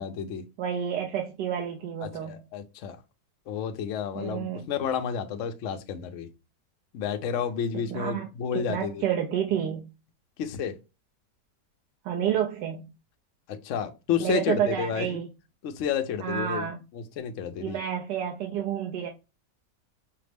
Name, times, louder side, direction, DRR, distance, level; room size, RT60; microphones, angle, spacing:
voice 1, 0.0-0.4 2.0-3.0 3.5-6.3 6.9-9.0 10.4-10.7 13.6-15.2 15.6-16.6 16.9-17.8, left 7 dB, 65° left, 0.8 m, -31 dB
voice 2, 0.6-2.4 4.1-4.7 7.9-8.3 8.7-9.9 12.0-12.8 14.2-15.3 16.2-16.8 17.6-19.1, right 9 dB, 80° right, 1.3 m, -29 dB
5.7 x 2.0 x 3.3 m
omnidirectional pair, 1.8 m